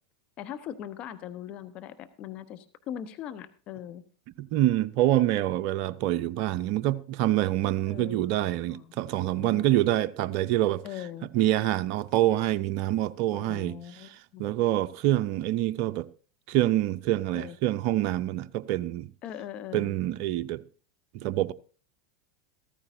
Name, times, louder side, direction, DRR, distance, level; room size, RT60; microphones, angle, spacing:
voice 1, 0.4-4.0 7.8-8.2 8.7-8.9 9.3-9.8 10.8-11.3 13.3-14.5 17.3-17.6 19.2-19.9, left 10 dB, 45° left, 0.9 m, -40 dB
voice 2, 4.4-10.8 11.3-14.1 14.4-16.1 16.5-19.1 19.7-20.6 21.1-21.5, right 14 dB, 55° right, 0.5 m, -26 dB
14.0 x 14.0 x 2.6 m
hypercardioid pair, 90°, 3 cm